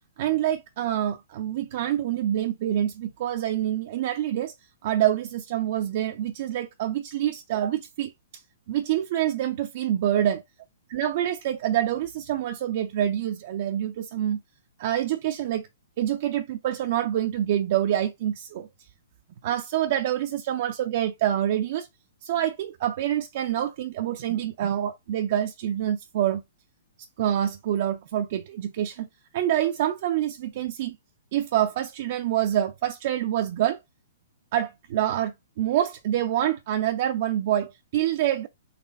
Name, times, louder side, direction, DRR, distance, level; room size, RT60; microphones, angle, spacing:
voice 1, 0.2-4.5 4.8-8.4 8.7-10.4 10.9-14.4 14.8-15.7 16.0-18.7 19.4-21.9 22.2-26.4 27.2-29.1 29.3-31.0 31.3-33.8 34.5-38.5, right 11 dB, 55° right, 0.5 m, -26 dB
4.2 x 3.0 x 3.9 m
hypercardioid pair, 130°, 0 cm